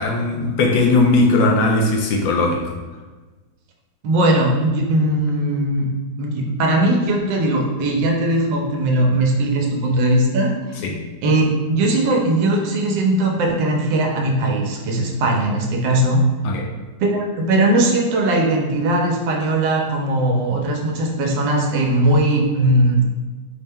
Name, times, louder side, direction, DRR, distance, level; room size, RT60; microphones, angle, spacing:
voice 1, 0.0-2.8 10.8-11.0 16.4-16.6, left 2 dB, 85° left, 1 dB, 1.3 m, -18 dB
voice 2, 4.0-5.9 6.2-10.8 11.2-16.2 17.0-23.0, right 1 dB, 75° right, 0 dB, 1.2 m, -19 dB
4.3 x 2.1 x 3.5 m, 1.3 s
omnidirectional pair, 2.0 m